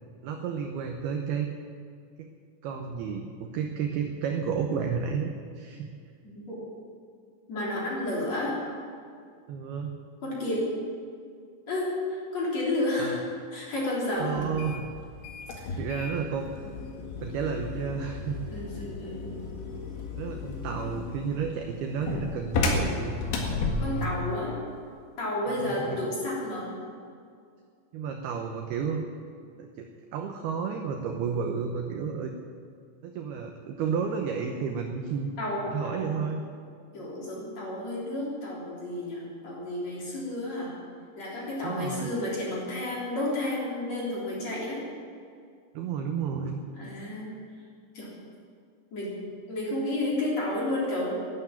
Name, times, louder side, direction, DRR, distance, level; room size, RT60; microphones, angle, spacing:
voice 1, 0.2-1.5 2.2-2.3 2.6-5.9 9.5-9.9 13.0-13.2 14.2-14.9 15.8-16.7 17.2-18.4 20.2-23.2 23.8-24.2 25.5-26.1 27.9-29.1 29.6-32.3 33.0-35.3 35.7-36.4 41.6-42.1 45.7-46.6, right 6 dB, 80° right, 4 dB, 2.2 m, -32 dB
voice 2, 6.2-6.6 7.5-8.6 10.2-10.7 11.7-13.2 13.5-14.4 15.6-15.8 18.5-19.5 23.8-24.5 25.2-26.7 35.4-36.1 36.9-40.8 41.2-44.8 46.7-47.3 47.9-48.1 48.9-49.1 49.5-51.3, left 1 dB, 35° left, -5 dB, 4.3 m, -31 dB
sound 1, 14.4-24.3, left 3 dB, 70° left, 3.9 m, -33 dB
12.5 x 11.5 x 9.0 m, 2.3 s
omnidirectional pair, 5.7 m